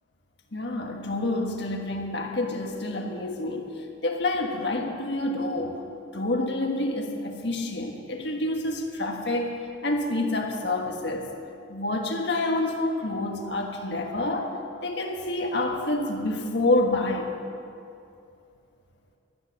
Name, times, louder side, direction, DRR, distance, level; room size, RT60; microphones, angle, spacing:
voice 1, 0.5-5.8 6.1-11.3 11.7-14.5 14.8-17.3, left 2 dB, 60° left, 2 dB, 1.5 m, -28 dB
14.0 x 10.5 x 6.4 m, 2.6 s
head